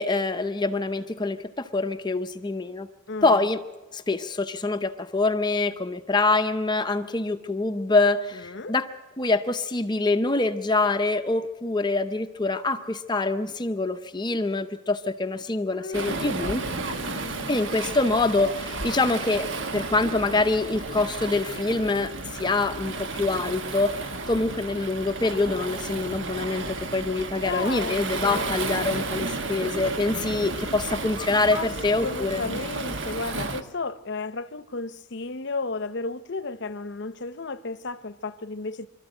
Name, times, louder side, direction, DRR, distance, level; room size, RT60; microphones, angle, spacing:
voice 1, 0.0-2.9 3.2-3.6 3.9-8.9 9.2-16.6 17.5-19.5 19.7-32.6, left 3 dB, 20° left, 0.6 m, -25 dB
voice 2, 3.1-3.4 8.3-8.7 15.7-17.8 27.4-28.6 31.5-31.7 32.0-38.9, left 3 dB, 55° left, 0.7 m, -34 dB
Waves surf, 15.9-33.6, right 3 dB, 60° right, 1.2 m, -33 dB
25.0 x 13.0 x 9.0 m
head